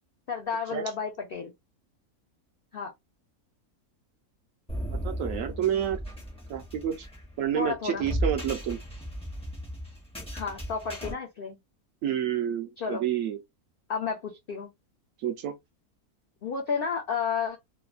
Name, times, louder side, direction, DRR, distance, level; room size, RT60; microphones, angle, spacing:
voice 1, 0.3-1.5 2.7-2.9 7.5-8.1 10.3-11.6 12.8-13.1 13.9-14.7 16.4-17.6, left 6 dB, 65° left, 0.6 m, -31 dB
sound 1, 4.7-11.1, right 1 dB, 5° left, 0.4 m, -35 dB
voice 2, 4.9-6.0 6.5-7.1 7.4-8.8 12.0-13.4 15.2-15.5, right 9 dB, 70° right, 0.9 m, -29 dB
3.1 x 2.1 x 2.4 m
omnidirectional pair, 1.6 m